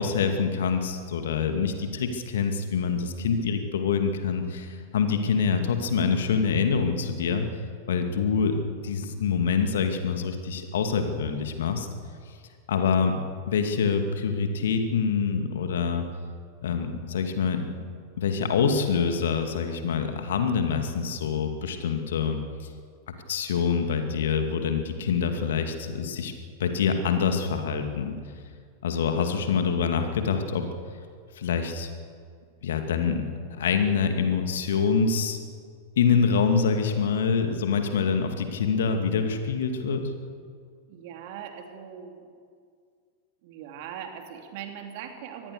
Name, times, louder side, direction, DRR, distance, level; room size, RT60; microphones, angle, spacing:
voice 1, 0.0-7.5 7.9-11.9 12.7-13.2 13.5-16.0 16.6-17.7 18.2-22.4 23.3-26.3 26.6-28.2 28.8-30.6 31.4-31.9 32.6-33.2 33.5-35.4 36.0-40.1, left 6 dB, 60° left, 6 dB, 2.4 m, -25 dB
voice 2, 40.9-42.3 43.4-45.5, right 8 dB, 50° right, 5 dB, 3.0 m, -40 dB
24.5 x 19.0 x 6.9 m, 2.2 s
figure-of-eight pair, 90°, 0 cm